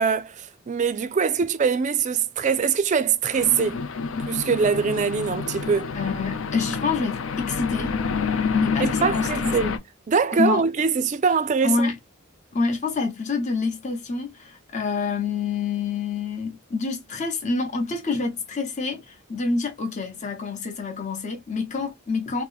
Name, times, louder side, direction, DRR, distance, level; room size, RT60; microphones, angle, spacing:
voice 1, 0.0-3.8 4.2-5.9 8.8-9.7 10.1-11.9, right 6 dB, 35° right, 0.3 m, -23 dB
sound 1, 3.3-9.8, left 5 dB, 70° left, 0.5 m, -28 dB
voice 2, 5.9-8.0 8.5-9.8 10.3-10.7 11.6-12.0 12.5-22.4, left 4 dB, 35° left, 0.9 m, -27 dB
2.9 x 2.1 x 3.9 m
head